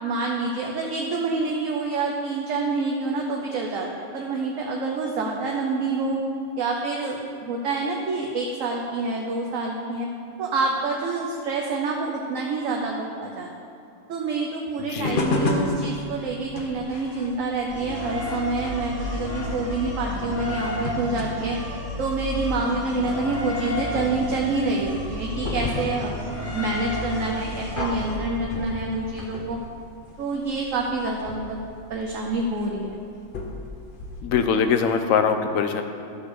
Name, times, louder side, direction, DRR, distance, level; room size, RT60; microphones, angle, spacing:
voice 1, 0.0-6.2 6.6-10.1 10.4-13.5 14.1-21.6 22.0-29.6 30.2-31.6 31.9-33.0, right 3 dB, 65° right, 0 dB, 1.1 m, -27 dB
voice 2, 14.8-15.5 34.2-35.8, left 6 dB, 70° left, 7 dB, 1.0 m, -23 dB
sound 1, 15.0-34.2, left 2 dB, 40° left, 1.0 m, -35 dB
sound 2, 17.7-28.6, left 1 dB, 10° right, 1.6 m, -32 dB
12.5 x 4.3 x 6.7 m, 2.5 s
omnidirectional pair, 1.5 m